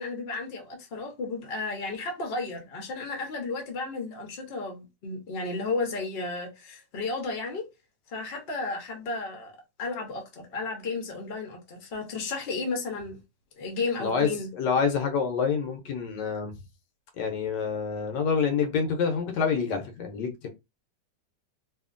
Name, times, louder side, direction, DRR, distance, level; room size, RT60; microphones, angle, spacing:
voice 1, 0.0-7.7 8.1-9.5 9.8-13.2 13.6-14.5, left 3 dB, 50° left, 0.8 m, -33 dB
voice 2, 14.0-16.5 17.2-20.5, left 6 dB, 80° left, 1.3 m, -27 dB
2.7 x 2.7 x 2.4 m
omnidirectional pair, 1.9 m